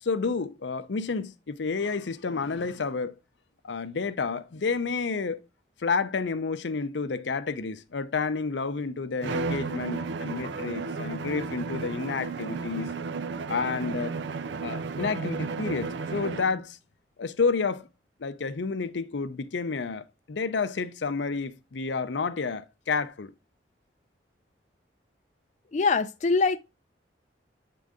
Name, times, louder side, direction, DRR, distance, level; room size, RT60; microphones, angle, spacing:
voice 1, 0.0-3.2 3.6-5.4 5.8-12.9 13.5-14.2 14.6-16.8 17.2-17.9 18.2-23.3, left 4 dB, 80° left, 0.6 m, -30 dB
Bowed string instrument, 9.2-16.6, right 4 dB, 75° right, 0.4 m, -33 dB
voice 2, 25.7-26.6, left 4 dB, 40° left, 0.4 m, -23 dB
8.4 x 3.8 x 3.5 m
head